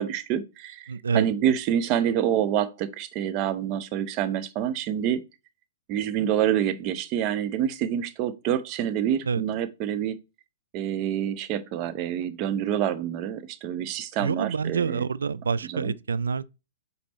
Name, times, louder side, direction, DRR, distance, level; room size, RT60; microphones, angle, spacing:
voice 1, 0.0-5.2 5.9-10.2 10.7-15.1 15.7-15.9, right 10 dB, 40° right, 0.7 m, -27 dB
voice 2, 0.9-1.3 9.2-9.4 14.2-16.4, right 5 dB, 85° right, 0.3 m, -27 dB
5.2 x 4.1 x 4.3 m
hypercardioid pair, 125°, 0 cm